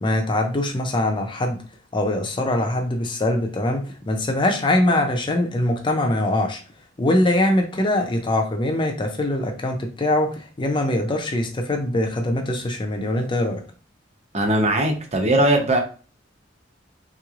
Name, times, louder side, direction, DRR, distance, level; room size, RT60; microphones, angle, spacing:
voice 1, 0.0-1.6 1.9-6.6 7.0-13.6, left 1 dB, 25° left, 4 dB, 0.5 m, -22 dB
voice 2, 14.3-15.8, right 1 dB, 35° right, 2 dB, 0.8 m, -19 dB
3.5 x 3.0 x 2.4 m, 0.38 s
head